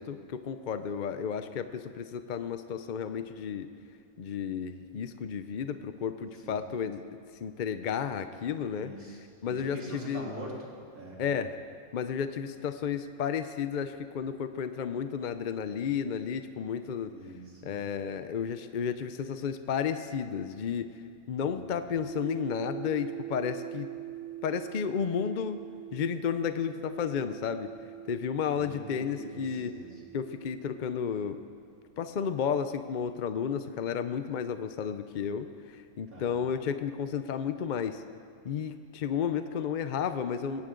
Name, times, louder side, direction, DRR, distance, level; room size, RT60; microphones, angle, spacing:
voice 1, 0.0-3.7 4.2-7.0 7.4-8.9 9.4-10.3 11.2-11.5 11.9-17.1 17.6-21.0 21.3-23.9 24.4-25.6 25.9-27.7 28.1-29.8 30.1-31.4 32.0-38.0 38.4-40.7, left 7 dB, 60° left, 10 dB, 0.5 m, -32 dB
voice 2, 8.7-10.7 10.9-11.2 17.1-17.8 21.3-21.9 28.5-30.0 36.1-36.4, right 1 dB, 80° right, -4 dB, 3.8 m, -44 dB
sound 1, 22.0-30.8, right 13 dB, 50° right, 1.2 m, -43 dB
20.5 x 17.0 x 3.8 m, 2.3 s
omnidirectional pair, 1.5 m